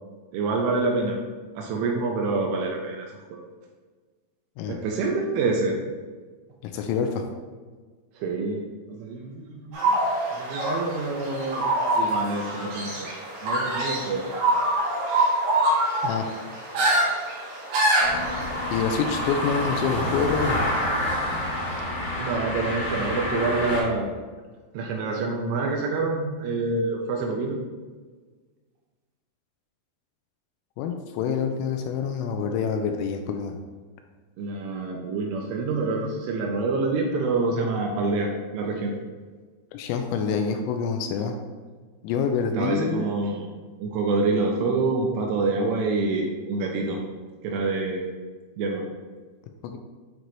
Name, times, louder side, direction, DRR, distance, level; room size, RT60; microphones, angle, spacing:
voice 1, 0.3-1.2 1.6-3.4 4.7-5.8 8.2-8.6 8.9-10.0 10.3-11.7 11.9-13.1 13.4-14.2 22.2-24.1 24.7-27.6 34.4-38.9 42.5-43.5 43.8-47.0 47.4-48.1 48.6-48.8, right 3 dB, 80° right, 0 dB, 2.9 m, -27 dB
voice 2, 6.6-7.3 16.0-16.3 18.7-20.6 30.8-33.6 39.7-41.4 42.0-43.0 49.6-49.8, left 6 dB, 85° left, 4 dB, 3.0 m, -26 dB
sound 1, 9.7-19.3, right 1 dB, 65° right, 3.1 m, -25 dB
sound 2, 18.0-23.8, left 1 dB, 60° left, 2.2 m, -28 dB
9.4 x 3.9 x 3.1 m, 1.4 s
omnidirectional pair, 6.0 m